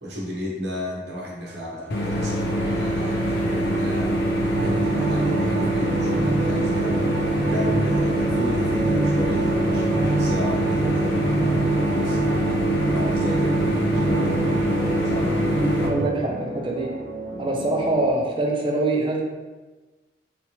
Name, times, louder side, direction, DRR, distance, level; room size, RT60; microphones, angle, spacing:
voice 1, 0.0-4.0 4.6-6.9 7.4-12.2 12.8-13.6 13.9-14.6 15.0-15.5, left 1 dB, 65° right, -4 dB, 0.9 m, -33 dB
sound 1, 1.9-15.9, equal, 60° left, 0.6 m, -24 dB
sound 2, 2.5-18.1, equal, 15° left, 0.9 m, -35 dB
sound 3, 4.5-16.1, right 3 dB, 85° right, 0.3 m, -27 dB
voice 2, 15.8-16.9 17.4-19.2, right 2 dB, 25° right, -1 dB, 0.5 m, -24 dB
3.3 x 2.9 x 2.8 m, 1.2 s
head